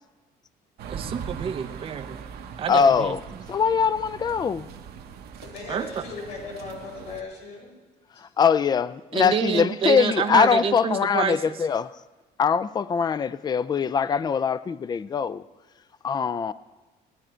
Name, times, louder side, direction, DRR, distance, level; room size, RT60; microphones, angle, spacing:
sound 1, 0.8-7.2, right 7 dB, 70° right, 1.1 m, -40 dB
voice 1, 0.9-2.2 2.6-3.1 5.7-6.0 9.1-11.6, right 7 dB, 35° right, 0.5 m, -28 dB
voice 2, 2.7-3.2 3.5-4.7 8.2-11.9 12.4-15.4 16.0-16.5, left 6 dB, 25° left, 0.4 m, -22 dB
voice 3, 5.4-7.7, left 3 dB, 80° left, 4.6 m, -37 dB
18.0 x 9.7 x 4.4 m
cardioid pair, 110°, 17 cm